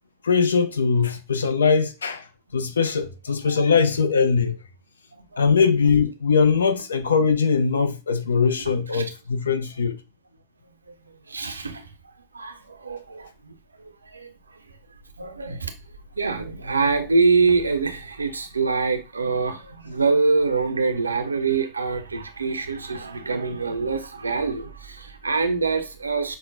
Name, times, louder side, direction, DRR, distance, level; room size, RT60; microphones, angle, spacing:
voice 1, 0.2-2.2 2.5-4.6 5.4-10.0, left 5 dB, 70° left, 0.4 m, -21 dB
voice 2, 5.1-5.4 8.9-9.1 11.3-11.9 12.3-14.6 15.2-15.7 16.2-26.4, right 4 dB, 75° right, 0.5 m, -25 dB
5.7 x 2.1 x 2.4 m
figure-of-eight pair, 90°, 0 cm